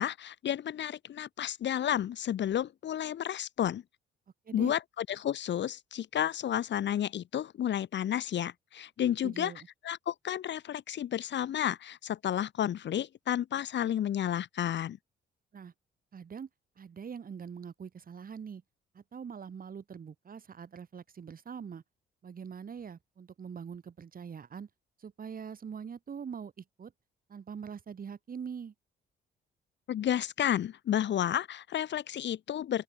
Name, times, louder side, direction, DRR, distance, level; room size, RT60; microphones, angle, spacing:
voice 1, 0.0-3.8 4.5-9.5 9.8-15.0 29.9-32.8, left 10 dB, 65° left, 1.8 m, -31 dB
voice 2, 9.2-9.7 15.5-15.7 16.1-16.5 16.8-18.6 18.9-21.8 22.2-24.7 25.0-26.9 27.3-28.7, right 7 dB, 45° right, 4.4 m, -43 dB
open air
cardioid pair, 90°, 20 cm